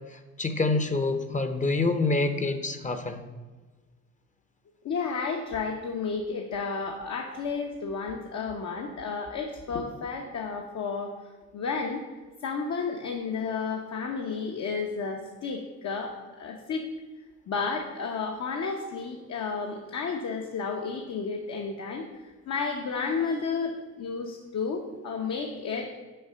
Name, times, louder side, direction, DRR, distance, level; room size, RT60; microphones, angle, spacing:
voice 1, 0.4-3.2, left 3 dB, 25° left, 9 dB, 0.7 m, -26 dB
voice 2, 4.8-11.1 11.5-12.0 12.4-16.9 17.5-25.9, left 5 dB, 65° left, 1 dB, 0.9 m, -32 dB
6.7 x 4.9 x 5.6 m, 1.3 s
cardioid pair, 90°, 30 cm